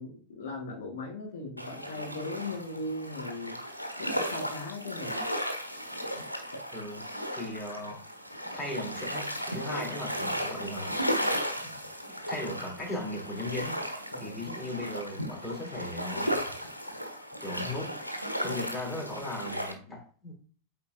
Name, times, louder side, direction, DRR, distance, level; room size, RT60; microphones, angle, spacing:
voice 1, 0.0-3.6 4.0-5.2 14.1-14.4, left 2 dB, 60° left, -2 dB, 1.7 m, -38 dB
sound 1, 1.6-19.7, equal, 90° right, 0.9 m, -35 dB
voice 2, 6.7-7.0 7.3-8.0 8.5-11.0 12.1-13.8 14.2-16.3 17.4-17.9 18.4-20.3, left 1 dB, 10° left, -4 dB, 3.4 m, -37 dB
8.3 x 4.3 x 2.7 m, 0.43 s
figure-of-eight pair, 90°, 0 cm